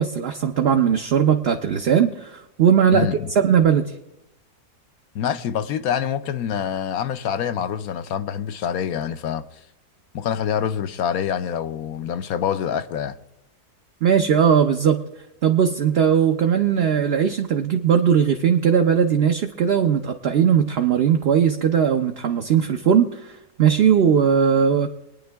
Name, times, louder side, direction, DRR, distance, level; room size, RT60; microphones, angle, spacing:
voice 1, 0.0-3.1 3.3-3.9 14.0-15.0 15.4-24.9, right 8 dB, 50° right, 0.8 m, -19 dB
voice 2, 2.9-3.3 5.1-9.4 10.1-13.2, left 8 dB, 70° left, 1.1 m, -26 dB
23.0 x 9.6 x 3.4 m
omnidirectional pair, 1.6 m